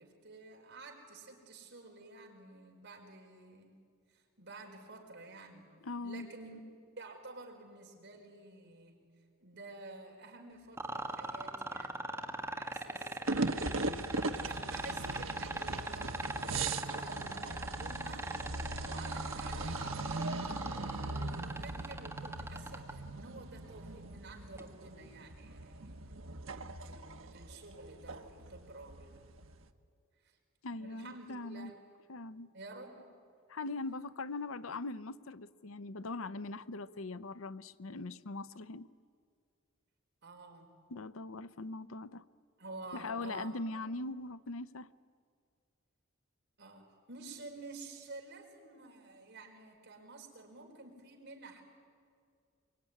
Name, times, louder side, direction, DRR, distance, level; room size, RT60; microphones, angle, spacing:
voice 1, 0.0-3.8 4.1-5.7 6.0-6.6 7.0-9.0 9.4-14.0 14.3-18.3 18.8-26.0 26.8-29.3 30.2-30.4 30.7-31.9 32.5-33.1 40.2-40.7 42.6-43.6 46.6-51.6, right 3 dB, 60° right, 1 dB, 5.0 m, -51 dB
voice 2, 5.8-6.3 30.6-31.7 32.1-32.5 33.5-38.9 40.9-42.2 42.9-44.9, left 2 dB, 90° left, 15 dB, 0.7 m, -41 dB
sound 1, 10.8-22.9 24.6-24.7, right 2 dB, 15° right, 1.6 m, -39 dB
sound 2, 13.3-29.6, right 2 dB, 75° right, 1.2 m, -39 dB
24.0 x 23.5 x 9.8 m, 2.2 s
head